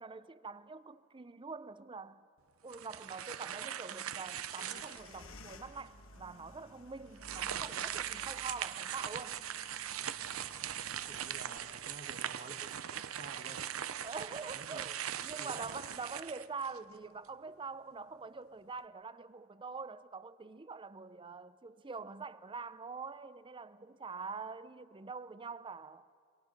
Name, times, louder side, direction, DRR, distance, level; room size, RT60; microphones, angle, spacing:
voice 1, 0.0-2.3 2.6-9.5 14.0-26.1, right 4 dB, 25° right, 0.5 m, -45 dB
sound 1, 2.7-5.2 5.8-5.9 7.2-17.0, right 10 dB, 85° right, 0.7 m, -40 dB
sound 2, 4.6-11.6, left 2 dB, 70° left, 1.3 m, -56 dB
voice 2, 11.0-12.8 13.1-13.6 14.5-14.9 15.4-15.7, right 3 dB, 40° right, 1.6 m, -51 dB
29.0 x 23.0 x 5.3 m
head